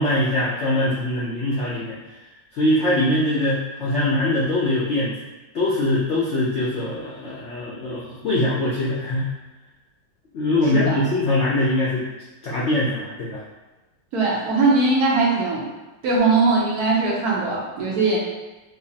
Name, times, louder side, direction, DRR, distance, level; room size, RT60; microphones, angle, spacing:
voice 1, 0.0-2.0 2.5-5.2 5.5-9.3 10.3-12.0 12.4-13.4, left 1 dB, 70° left, -7 dB, 0.6 m, -22 dB
voice 2, 14.1-15.6 16.0-18.2, right 3 dB, 65° right, -5 dB, 1.2 m, -20 dB
5.0 x 2.0 x 2.7 m, 1.1 s
omnidirectional pair, 1.9 m